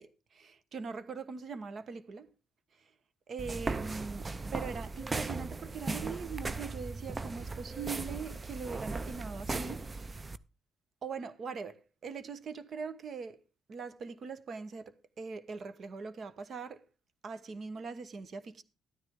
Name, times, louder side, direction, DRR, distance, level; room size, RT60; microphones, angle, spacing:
voice 1, 0.0-2.3 3.3-10.2 11.0-13.4 13.7-16.8 17.2-18.6, right 5 dB, 50° right, 1.2 m, -42 dB
sound 1, 3.4-10.4, right 3 dB, 25° right, 0.6 m, -38 dB
13.0 x 9.8 x 3.6 m
cardioid pair, 90°, 0 cm